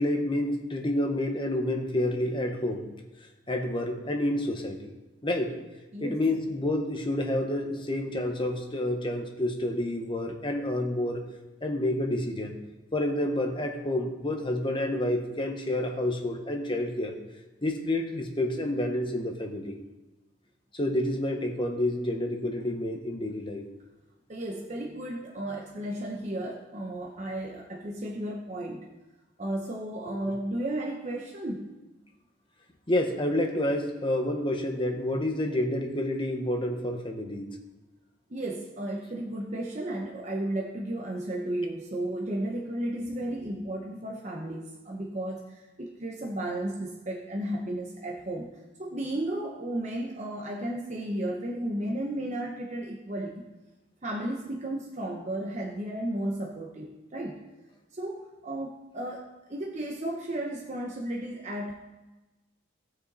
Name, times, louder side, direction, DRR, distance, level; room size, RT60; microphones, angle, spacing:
voice 1, 0.0-2.9 3.5-4.9 5.2-5.6 6.0-11.2 11.6-12.6 12.9-17.1 17.6-19.8 20.7-23.6 30.1-30.2 32.9-37.6, left 1 dB, 25° left, 3 dB, 1.2 m, -29 dB
voice 2, 24.3-28.9 29.4-31.7 38.3-53.4 54.0-57.4 57.9-61.7, right 1 dB, 35° right, -1 dB, 1.0 m, -34 dB
17.5 x 6.6 x 4.2 m, 1.1 s
head